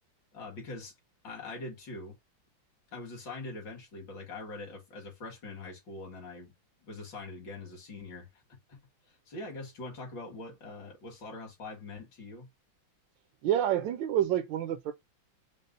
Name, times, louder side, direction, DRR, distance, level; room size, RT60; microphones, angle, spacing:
voice 1, 0.3-0.9 1.2-2.2 2.9-6.5 6.8-8.3 8.7-8.8 9.3-12.5, left 3 dB, 70° left, 2.5 m, -43 dB
voice 2, 13.4-14.9, right 11 dB, 80° right, 1.3 m, -28 dB
5.3 x 2.0 x 3.8 m
omnidirectional pair, 2.1 m